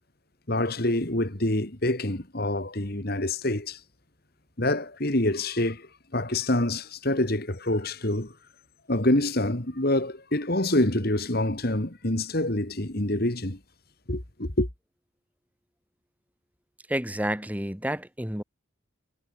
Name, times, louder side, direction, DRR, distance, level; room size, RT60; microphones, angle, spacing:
voice 1, 0.5-3.8 4.6-8.3 8.9-13.6 14.1-14.7, left 1 dB, 50° left, 2.5 m, -26 dB
voice 2, 16.9-18.4, right 1 dB, 5° right, 2.5 m, -30 dB
head